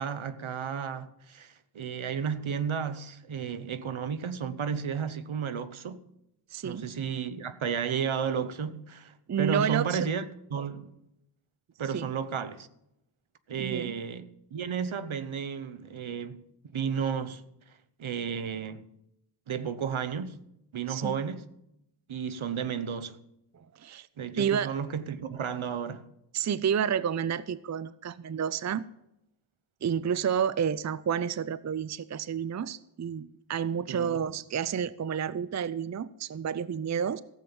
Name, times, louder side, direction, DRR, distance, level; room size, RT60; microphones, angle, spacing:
voice 1, 0.0-6.0 6.6-10.9 11.8-12.7 13.5-16.4 16.7-17.4 18.0-18.9 19.5-20.4 20.7-21.4 22.1-23.2 24.2-26.1 33.9-34.2, right 7 dB, 70° right, 1.0 m, -33 dB
voice 2, 6.5-6.9 9.3-10.1 11.9-12.1 13.6-13.9 20.9-21.2 23.5-24.1 24.4-24.7 26.3-28.8 29.8-37.2, right 8 dB, 35° right, 0.5 m, -30 dB
15.0 x 7.6 x 7.0 m
wide cardioid pair, 55°, 50 cm